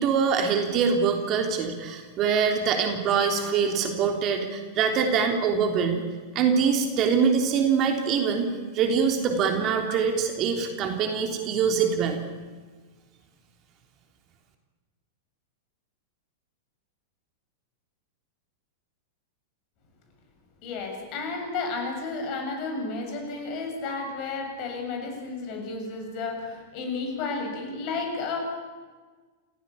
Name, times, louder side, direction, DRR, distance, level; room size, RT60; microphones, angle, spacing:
voice 1, 0.0-6.0 6.3-8.5 8.7-12.2, right 6 dB, 35° right, 4 dB, 3.4 m, -24 dB
voice 2, 20.6-28.4, left 4 dB, 40° left, 3 dB, 7.6 m, -32 dB
28.5 x 16.5 x 8.7 m, 1.4 s
figure-of-eight pair, 95°, 0 cm